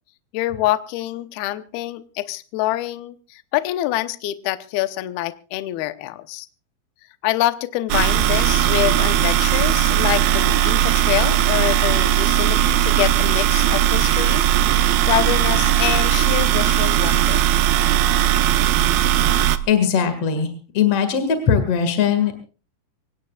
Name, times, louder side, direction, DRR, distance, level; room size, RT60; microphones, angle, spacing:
voice 1, 0.3-6.5 7.2-17.5, left 15 dB, 75° left, 11 dB, 2.4 m, -26 dB
sound 1, 7.9-19.6, right 12 dB, 80° right, 2.1 m, -18 dB
voice 2, 19.7-22.4, left 7 dB, 50° left, 8 dB, 2.0 m, -20 dB
24.5 x 19.5 x 2.4 m, 0.35 s
omnidirectional pair, 5.6 m